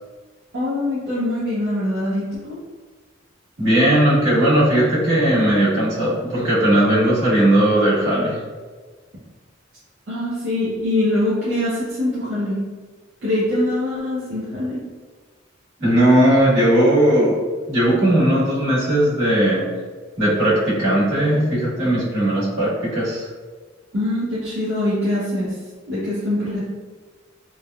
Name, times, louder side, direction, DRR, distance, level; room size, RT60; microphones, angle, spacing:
voice 1, 0.5-2.6 10.1-12.6 13.2-14.8 23.9-25.5 25.9-26.6, left 1 dB, 65° right, -10 dB, 0.7 m, -23 dB
voice 2, 3.6-8.4 15.8-19.6 20.2-23.3, right 1 dB, 90° right, -10 dB, 1.5 m, -17 dB
3.2 x 2.1 x 2.3 m, 1.4 s
head